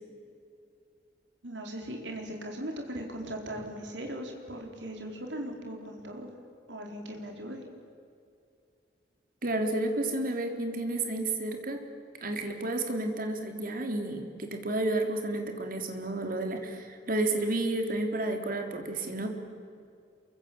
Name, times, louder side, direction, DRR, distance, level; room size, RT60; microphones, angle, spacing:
voice 1, 1.4-6.3 6.7-7.6, right 1 dB, 80° right, 2 dB, 4.5 m, -39 dB
voice 2, 9.4-11.8 12.2-19.3, right 2 dB, 50° right, 5 dB, 3.5 m, -31 dB
28.0 x 24.0 x 8.9 m, 2.4 s
head